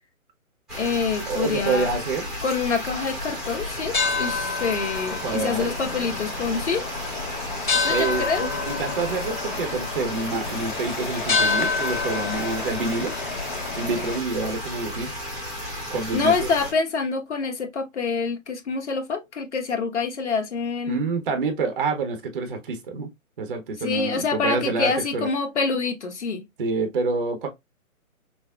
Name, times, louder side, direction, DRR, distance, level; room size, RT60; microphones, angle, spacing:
voice 1, 0.7-1.9 2.4-6.8 7.8-8.5 16.1-21.1 23.8-26.4, left 4 dB, 50° left, 1.1 m, -26 dB
sound 1, 0.7-16.7, left 1 dB, ahead, 0.8 m, -33 dB
voice 2, 1.3-2.3 5.2-5.7 7.9-13.1 13.7-15.1 15.9-16.5 20.9-23.1 23.4-25.3 26.6-27.5, right 4 dB, 35° right, 0.7 m, -27 dB
sound 2, 3.3-14.2, left 4 dB, 35° left, 0.5 m, -29 dB
5.7 x 2.0 x 2.3 m
figure-of-eight pair, 140°, 43 cm